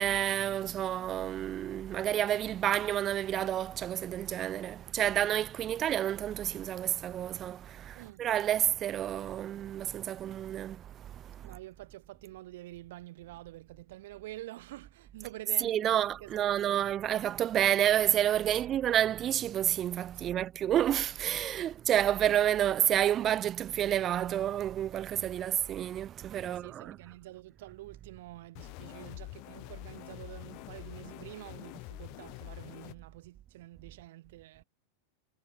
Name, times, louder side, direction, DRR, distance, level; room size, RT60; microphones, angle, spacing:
voice 1, 0.0-11.5 15.6-27.0, right 11 dB, 35° right, 0.8 m, -29 dB
voice 2, 7.9-8.3 11.4-16.7 18.5-18.6 20.1-20.5 26.3-34.6, right 16 dB, 70° right, 3.5 m, -48 dB
sound 1, 28.6-32.9, left 30 dB, 50° left, 0.9 m, -46 dB
hypercardioid pair, 115°, 0 cm